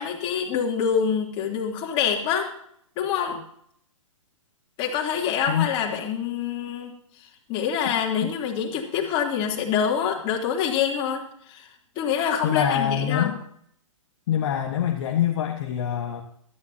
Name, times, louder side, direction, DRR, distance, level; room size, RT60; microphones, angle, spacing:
voice 1, 0.0-2.5 3.0-3.4 4.8-6.9 7.5-11.6 11.9-13.3, left 7 dB, 30° left, 0 dB, 3.2 m, -26 dB
voice 2, 12.4-13.4 14.3-16.2, left 10 dB, 45° left, 3 dB, 1.5 m, -25 dB
17.0 x 13.5 x 2.8 m, 0.67 s
figure-of-eight pair, 120°, 17 cm